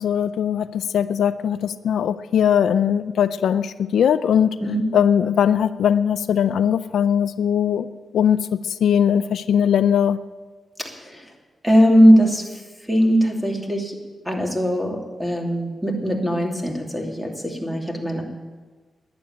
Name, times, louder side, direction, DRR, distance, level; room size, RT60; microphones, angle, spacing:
voice 1, 0.0-4.5 4.9-7.9 8.1-8.4 8.8-10.2, left 8 dB, 85° left, 14 dB, 0.4 m, -20 dB
voice 2, 10.8-11.3 11.6-12.6 12.9-14.0 14.2-18.2, equal, 5° right, 1 dB, 2.8 m, -19 dB
11.5 x 10.5 x 9.2 m, 1.3 s
cardioid pair, 80°, 0 cm